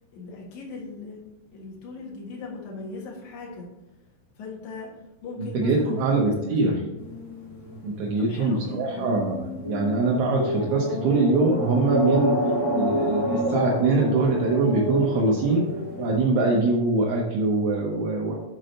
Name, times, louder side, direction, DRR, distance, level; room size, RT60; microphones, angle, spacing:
voice 1, 0.1-3.6 4.3-4.9 5.2-6.8 8.2-9.1, left 3 dB, 75° left, -3 dB, 1.7 m, -39 dB
voice 2, 5.5-6.7 7.8-9.3 9.7-12.3 12.7-15.6 16.0-18.3, right 3 dB, 75° right, -2 dB, 3.2 m, -23 dB
sound 1, 7.0-16.3, equal, 40° left, 1.8 m, -29 dB
7.8 x 4.7 x 5.3 m, 0.99 s
omnidirectional pair, 5.9 m